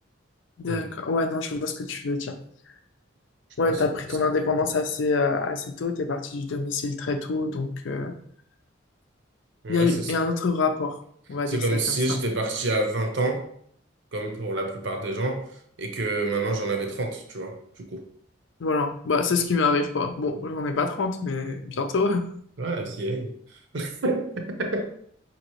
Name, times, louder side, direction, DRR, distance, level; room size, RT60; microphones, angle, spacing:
voice 1, 0.6-2.4 3.6-8.1 9.7-11.0 11.3-12.0 18.6-22.2, left 4 dB, 70° left, 7 dB, 0.5 m, -26 dB
voice 2, 9.6-10.1 11.5-13.5 14.1-15.5 15.8-18.0 22.6-23.3 23.7-24.8, right 2 dB, 65° right, 4 dB, 0.7 m, -28 dB
5.1 x 2.9 x 3.0 m, 0.63 s
head